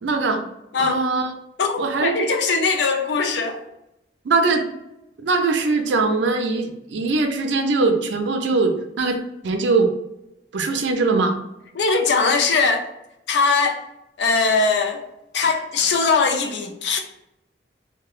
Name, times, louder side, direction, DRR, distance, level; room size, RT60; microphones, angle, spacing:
voice 1, 0.0-0.4 0.8-1.3 1.8-2.3 4.2-4.7 5.2-9.2 9.4-9.9 10.5-11.4, right 3 dB, 80° right, 5 dB, 0.4 m, -21 dB
voice 2, 1.6-3.6 11.7-12.9 13.3-13.8 14.2-15.0 15.3-17.0, left 4 dB, 70° left, 4 dB, 0.4 m, -20 dB
2.8 x 2.1 x 2.4 m, 0.87 s
head